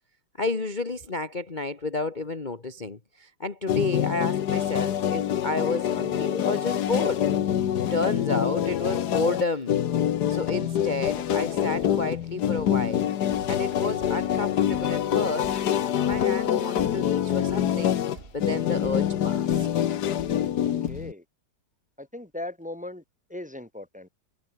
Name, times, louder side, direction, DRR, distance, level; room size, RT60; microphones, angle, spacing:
voice 1, 0.4-7.3 7.9-9.8 10.3-13.1 13.5-15.5 16.0-19.7, left 3 dB, 25° left, 1.7 m, -31 dB
sound 1, 3.7-21.1, left 10 dB, 55° left, 1.4 m, -26 dB
Thump thud, 11.0-21.1, right 3 dB, 30° right, 2.7 m, -49 dB
voice 2, 20.6-21.2 22.0-23.0 23.3-24.1, left 1 dB, 5° right, 2.3 m, -38 dB
omnidirectional pair, 2.3 m